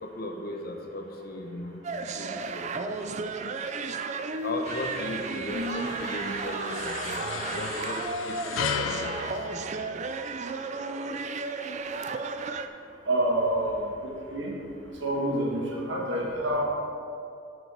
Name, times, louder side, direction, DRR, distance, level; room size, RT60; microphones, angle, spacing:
voice 1, 0.0-1.8 2.2-3.3 4.4-7.2 7.5-9.1 9.5-9.6, left 1 dB, 50° left, 3 dB, 1.0 m, -37 dB
sound 1, 1.8-12.7, right 4 dB, 35° right, 0.4 m, -33 dB
sound 2, 4.6-10.4, left 8 dB, 90° left, 0.4 m, -37 dB
voice 2, 5.5-5.9 13.1-14.5 15.0-16.6, right 1 dB, 70° right, -3 dB, 1.9 m, -28 dB
7.6 x 5.3 x 6.6 m, 2.5 s
head